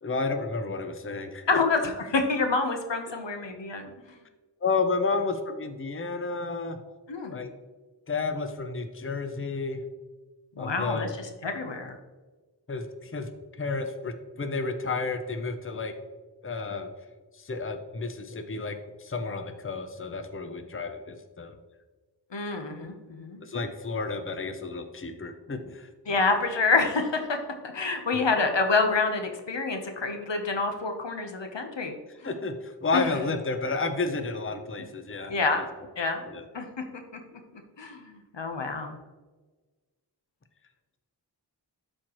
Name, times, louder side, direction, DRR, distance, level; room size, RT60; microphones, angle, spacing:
voice 1, 0.0-1.6 3.1-3.2 4.6-6.8 7.3-7.5 8.1-9.8 10.6-11.1 12.7-13.3 13.6-15.9 16.4-16.9 17.4-21.6 23.4-25.9 28.1-28.2 32.2-35.3 36.3-36.4, left 4 dB, 30° left, 7 dB, 0.7 m, -31 dB
voice 2, 1.5-3.9 7.1-7.5 10.6-11.1 11.4-12.0 22.3-23.4 26.1-27.4 27.7-31.9 32.2-32.3 32.9-33.1 34.8-34.9 35.3-35.6 36.0-36.2 36.5-36.7 37.8-39.0, left 3 dB, 80° left, 5 dB, 1.0 m, -27 dB
12.0 x 4.4 x 3.0 m, 1.3 s
wide cardioid pair, 50°, 43 cm